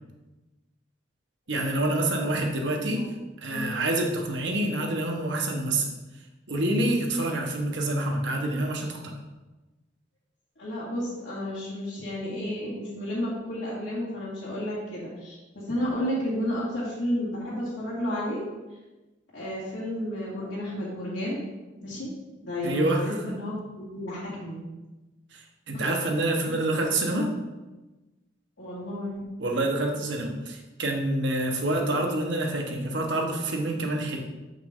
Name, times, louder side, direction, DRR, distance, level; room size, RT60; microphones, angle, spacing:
voice 1, 1.5-3.1 3.4-5.9 6.5-9.1 22.6-23.4 25.3-27.3 29.4-34.2, right 1 dB, 70° right, 2 dB, 1.2 m, -27 dB
voice 2, 10.6-18.4 19.3-21.4 21.8-22.1 22.4-23.6 23.9-24.6 25.7-25.9 26.5-26.6 28.6-29.3, left 1 dB, 70° left, -10 dB, 2.3 m, -32 dB
7.4 x 5.7 x 3.7 m, 1.1 s
head